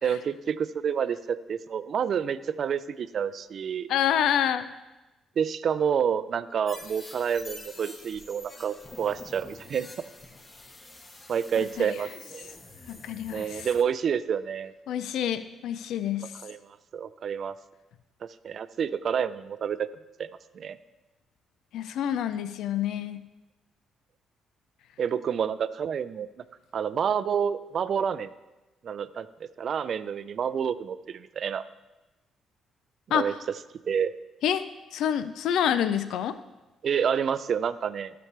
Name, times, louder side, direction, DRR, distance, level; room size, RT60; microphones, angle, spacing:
voice 1, 0.0-3.9 5.4-9.9 11.3-12.5 13.3-14.7 16.4-16.6 16.9-17.5 18.4-19.9 20.2-20.3 20.5-20.8 25.0-26.3 26.7-28.3 28.8-29.3 29.6-31.6 33.1-33.3 33.9-34.1 36.8-38.1, right 7 dB, 55° right, 14 dB, 0.4 m, -28 dB
voice 2, 3.9-4.7 11.6-11.9 12.9-13.7 14.9-16.3 21.7-23.2 33.1-33.2 34.4-34.6 34.9-36.4, left 9 dB, 80° left, 12 dB, 0.4 m, -27 dB
sound 1, 6.7-13.8, left 2 dB, 30° left, 1.3 m, -47 dB
12.0 x 6.9 x 3.3 m, 1.1 s
cardioid pair, 90°, 0 cm